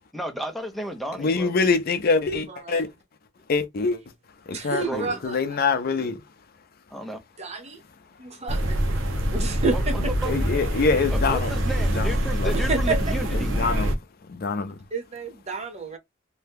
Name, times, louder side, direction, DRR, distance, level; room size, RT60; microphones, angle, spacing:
voice 1, 0.1-1.5 4.8-5.2 6.9-7.2 9.7-9.8 10.2-10.4 11.1-13.5, equal, ahead, 0.6 m, -33 dB
voice 2, 1.2-2.9 3.5-4.0 4.4-6.3 10.0-11.5 11.9-12.5 13.3-13.9 14.2-14.8, left 4 dB, 50° left, 0.5 m, -25 dB
voice 3, 4.5-5.4 7.4-7.8 8.2-8.8 9.3-10.0 12.5-13.0 14.9-16.0, right 3 dB, 35° right, 0.7 m, -29 dB
sound 1, 8.5-13.9, equal, 85° right, 0.7 m, -25 dB
2.7 x 2.2 x 3.5 m
head